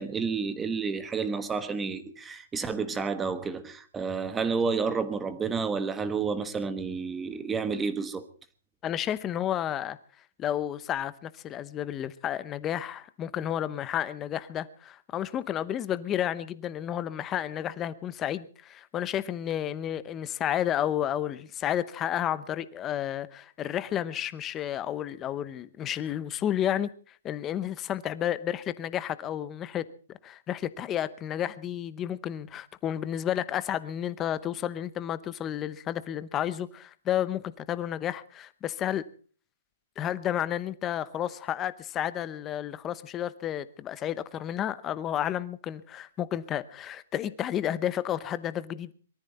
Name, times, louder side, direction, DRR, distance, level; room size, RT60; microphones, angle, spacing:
voice 1, 0.0-8.3, right 5 dB, 10° right, 1.3 m, -30 dB
voice 2, 8.8-10.0 10.4-26.9 27.2-39.0 40.0-48.9, left 10 dB, 15° left, 0.8 m, -31 dB
23.0 x 14.0 x 4.3 m
hypercardioid pair, 170°, 0 cm